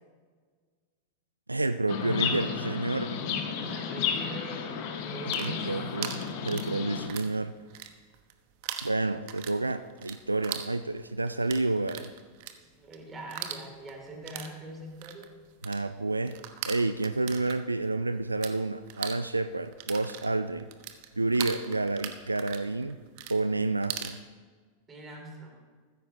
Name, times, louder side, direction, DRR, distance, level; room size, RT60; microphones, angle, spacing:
voice 1, 1.5-3.2 5.3-7.5 8.8-12.1 15.6-16.4 16.6-20.7 21.2-23.0 23.3-24.2, right 2 dB, 80° right, 12 dB, 0.4 m, -29 dB
Chirp tweet, 1.9-7.1, left 7 dB, 45° left, 1.5 m, -32 dB
voice 2, 3.4-5.7 12.4-15.4 24.9-25.6, right 1 dB, 20° right, 0 dB, 3.4 m, -43 dB
sound 1, 5.1-7.4 7.6-8.3 8.6-18.5 18.8-24.2, right 10 dB, 45° right, 1.0 m, -40 dB
15.0 x 13.5 x 3.1 m, 1.5 s
figure-of-eight pair, 90°, 0 cm